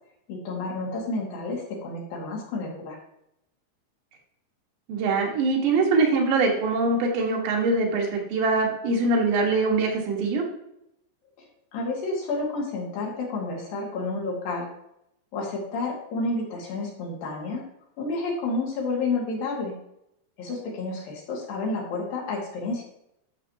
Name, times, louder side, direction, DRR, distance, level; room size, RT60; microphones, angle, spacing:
voice 1, 0.3-3.0 11.4-11.5 11.7-14.7 15.3-17.6 18.0-19.8 20.4-22.8, left 3 dB, 60° left, -2 dB, 3.5 m, -30 dB
voice 2, 4.9-10.4, right 3 dB, 85° right, 0 dB, 3.9 m, -23 dB
12.5 x 6.5 x 2.9 m, 0.79 s
omnidirectional pair, 4.8 m